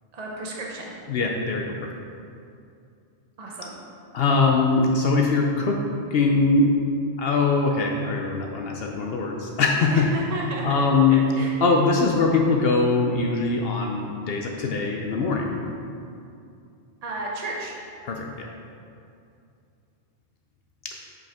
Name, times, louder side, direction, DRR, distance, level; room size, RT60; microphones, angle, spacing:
voice 1, 0.1-0.9 3.4-3.7 9.9-10.7 11.1-11.5 17.0-17.7, right 2 dB, 40° right, -3 dB, 1.0 m, -33 dB
voice 2, 1.1-1.7 4.1-5.8 6.1-6.7 7.2-10.1 10.6-11.2 11.6-15.8 18.0-18.5 20.8-20.9, left 4 dB, 65° left, 1 dB, 0.8 m, -22 dB
8.0 x 5.1 x 3.5 m, 2.5 s
omnidirectional pair, 1.1 m